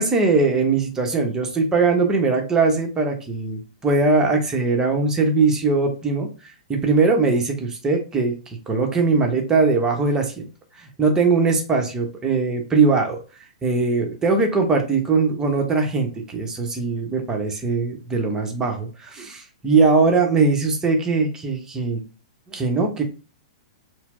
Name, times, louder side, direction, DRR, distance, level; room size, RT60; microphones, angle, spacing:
voice 1, 0.0-10.5 10.8-13.2 13.6-22.0 22.5-23.0, right 4 dB, 15° right, 2 dB, 0.8 m, -21 dB
4.2 x 2.0 x 2.5 m, 0.35 s
figure-of-eight pair, 105°, 4 cm